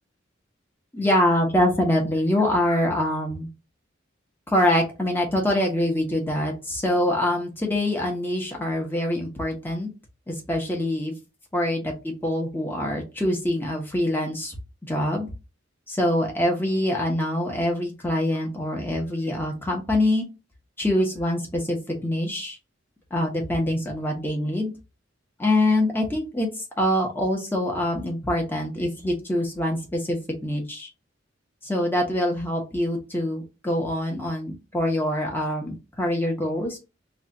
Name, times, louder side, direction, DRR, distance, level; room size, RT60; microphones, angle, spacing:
voice 1, 0.9-3.5 4.5-9.9 10.3-11.1 11.5-14.5 14.9-15.3 15.9-20.3 20.8-22.6 23.1-24.7 25.4-26.5 26.8-30.9 31.6-36.8, left 1 dB, 10° left, 0 dB, 1.1 m, -24 dB
3.2 x 2.4 x 4.1 m, 0.28 s
head